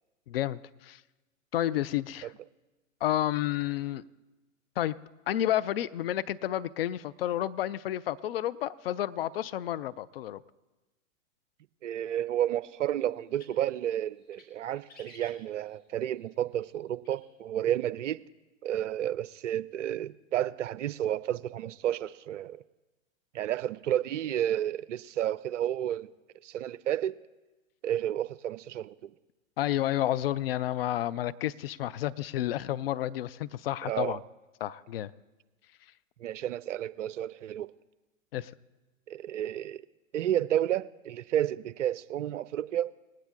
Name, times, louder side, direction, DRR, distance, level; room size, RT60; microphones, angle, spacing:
voice 1, 0.3-1.0 1.5-2.3 3.0-4.0 4.8-5.0 5.3-10.4 29.6-34.2 34.6-35.1 38.3-38.5, left 13 dB, 45° left, 16 dB, 0.4 m, -30 dB
voice 2, 11.8-18.2 18.6-22.6 23.3-26.1 26.4-27.2 27.8-29.1 33.8-34.2 36.2-37.7 39.1-39.8 40.1-42.9, right 11 dB, 60° right, 16 dB, 0.5 m, -31 dB
sound 1, 13.2-13.7 14.2-14.5 14.8-15.9 17.0-17.2, left 3 dB, 20° left, 1.7 m, -54 dB
19.5 x 9.2 x 3.7 m, 1.1 s
figure-of-eight pair, 110°, 42 cm